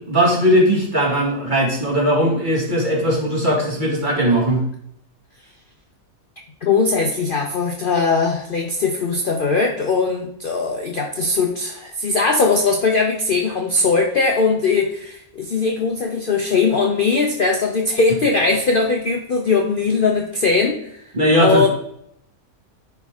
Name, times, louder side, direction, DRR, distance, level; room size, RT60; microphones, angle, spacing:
voice 1, 0.1-4.6 21.1-21.7, equal, 35° right, -2 dB, 1.8 m, -18 dB
voice 2, 6.6-21.0 21.4-21.7, left 4 dB, 50° left, 2 dB, 0.7 m, -20 dB
10.0 x 3.5 x 3.5 m, 0.72 s
omnidirectional pair, 1.5 m